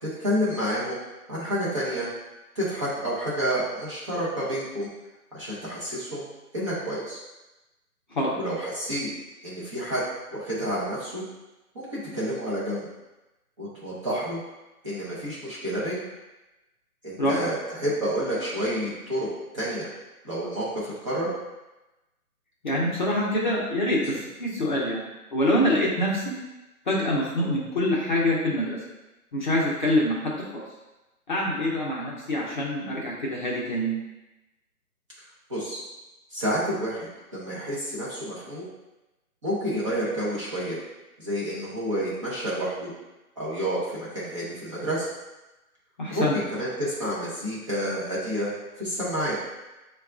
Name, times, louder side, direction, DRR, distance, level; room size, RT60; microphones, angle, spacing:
voice 1, 0.0-1.0 1.3-2.1 2.5-4.9 5.3-6.2 6.5-7.2 8.4-9.1 9.4-10.0 10.3-11.2 11.7-12.9 13.6-14.4 14.8-16.0 17.0-19.9 20.2-21.3 24.0-24.2 35.5-35.8 36.3-37.1 37.3-38.7 39.4-40.8 41.2-42.9 43.4-45.1 46.1-48.5 48.8-49.4, equal, 20° right, -9 dB, 0.7 m, -29 dB
voice 2, 17.2-17.5 22.6-24.1 24.4-25.0 25.3-26.3 26.9-28.8 29.3-30.6 31.3-34.0 46.0-46.4, left 1 dB, 35° left, -5 dB, 0.6 m, -25 dB
6.8 x 2.3 x 2.5 m, 1.0 s
hypercardioid pair, 155°, 45 cm